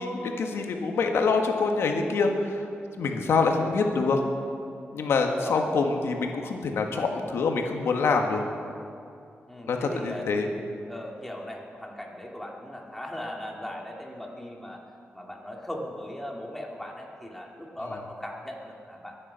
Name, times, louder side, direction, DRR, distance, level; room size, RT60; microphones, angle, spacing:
voice 1, 0.0-2.3 3.0-4.2 4.9-8.4 9.7-10.5, left 4 dB, 85° left, 3 dB, 1.7 m, -25 dB
voice 2, 5.3-5.6 9.5-10.3 10.9-14.8 15.1-19.2, left 1 dB, 5° left, -1 dB, 2.2 m, -38 dB
23.0 x 9.9 x 5.7 m, 2.5 s
wide cardioid pair, 125°, 4 cm